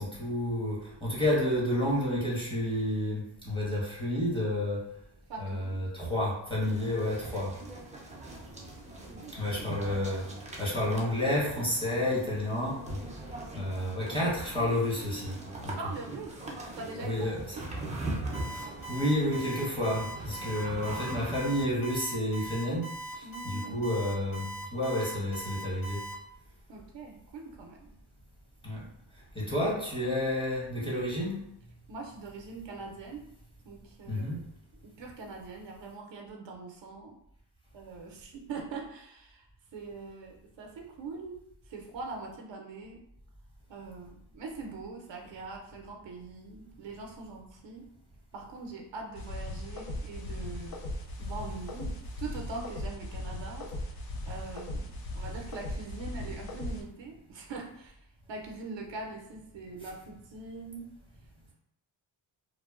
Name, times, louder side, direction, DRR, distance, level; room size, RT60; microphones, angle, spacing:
voice 1, 0.0-4.8 5.4-7.5 9.4-10.3 10.6-13.0 13.5-15.4 15.6-15.8 17.0-17.6 18.5-26.0 28.6-28.8 29.3-31.4 34.1-34.4, left 1 dB, 10° left, -6 dB, 1.2 m, -30 dB
voice 2, 5.3-5.8 9.0-9.4 15.8-16.4 16.8-17.6 18.4-18.8 23.2-23.9 26.7-27.9 31.9-33.2 33.6-34.4 34.8-37.2 37.7-39.5 39.7-41.3 41.6-43.0 43.7-47.8 48.3-50.8 51.2-54.0 54.3-54.9 55.1-60.9, right 3 dB, 65° right, 1 dB, 0.6 m, -42 dB
sound 1, 6.6-21.7, right 2 dB, 15° right, 0.5 m, -41 dB
Alarm, 18.3-26.1, right 2 dB, 80° left, 1.4 m, -41 dB
sound 2, 49.2-56.8, left 1 dB, 50° left, 0.5 m, -38 dB
2.8 x 2.1 x 2.4 m, 0.77 s
cardioid pair, 75°, 47 cm